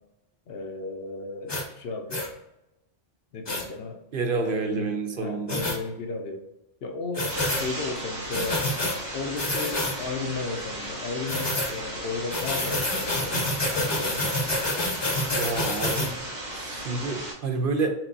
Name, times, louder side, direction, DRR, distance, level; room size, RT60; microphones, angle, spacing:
voice 1, 0.5-2.3 3.3-4.0 4.4-4.9 5.2-6.5 6.8-8.7 9.1-14.2, left 3 dB, 70° left, 5 dB, 0.8 m, -34 dB
sound 1, 1.5-1.7 2.1-2.3 3.5-3.6 5.5-5.8 7.1-7.7 8.3-9.0 9.4-10.0 11.3-11.7 12.3-16.1, left 1 dB, 25° left, 0.7 m, -28 dB
voice 2, 4.1-5.6 15.4-16.2 16.5-17.9, right 4 dB, 60° right, 4 dB, 0.7 m, -29 dB
sound 2, 7.3-17.3, right 1 dB, 45° right, 1.1 m, -36 dB
4.4 x 3.7 x 2.6 m, 0.92 s
omnidirectional pair, 1.1 m